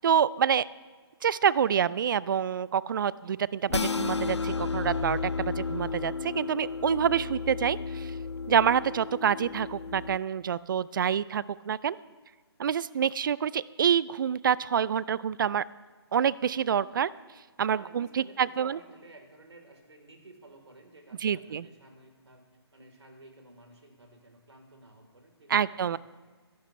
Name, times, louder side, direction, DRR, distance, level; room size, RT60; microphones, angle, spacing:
voice 1, 0.0-0.7 1.2-8.1 8.5-12.0 12.6-15.6 16.1-17.1 17.6-18.8 21.2-21.6 25.5-26.0, right 8 dB, 50° right, 20 dB, 0.4 m, -27 dB
sound 1, 3.7-10.2, left 4 dB, 85° left, 0.7 m, -33 dB
voice 2, 17.8-22.4 22.7-26.0, right 2 dB, 80° right, 3 dB, 3.7 m, -53 dB
23.5 x 11.5 x 3.3 m, 1.5 s
figure-of-eight pair, 145°, 14 cm